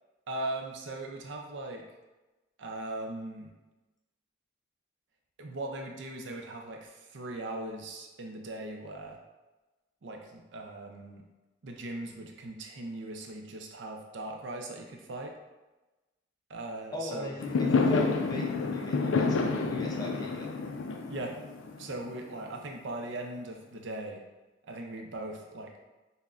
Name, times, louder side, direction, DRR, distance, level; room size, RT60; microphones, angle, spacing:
voice 1, 0.3-1.9 2.6-3.5 5.4-9.2 10.0-11.2 11.6-15.3 16.5-17.3 21.1-21.3 21.8-24.2 24.6-25.7, right 2 dB, 70° right, 2 dB, 0.5 m, -39 dB
voice 2, 16.9-20.5, left 1 dB, 20° left, -2 dB, 0.5 m, -39 dB
Fireworks, 17.4-22.6, left 4 dB, 90° left, 0.4 m, -29 dB
5.7 x 2.1 x 2.5 m, 1.1 s
head